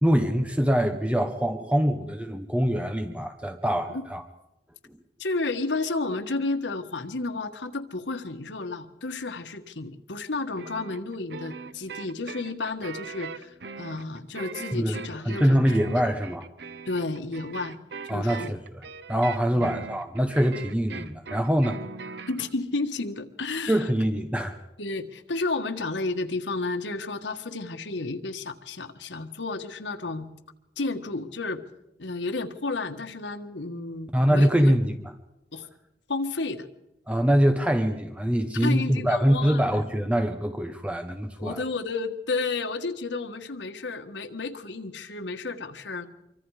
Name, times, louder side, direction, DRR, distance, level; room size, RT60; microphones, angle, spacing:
voice 1, 0.0-4.2 14.7-15.0 15.2-16.5 18.1-18.6 19.1-21.8 23.7-24.6 34.1-35.1 37.1-41.6, equal, 5° right, 6 dB, 1.0 m, -24 dB
voice 2, 5.2-15.8 16.9-17.8 18.1-18.5 19.5-19.7 22.3-23.9 24.8-30.3 30.8-31.6 32.0-34.7 35.5-35.7 36.1-36.7 38.5-39.6 41.4-46.1, left 3 dB, 90° left, 7 dB, 1.6 m, -32 dB
sound 1, 10.6-22.5, right 5 dB, 65° right, 0.9 m, -40 dB
26.0 x 24.0 x 4.9 m, 0.91 s
head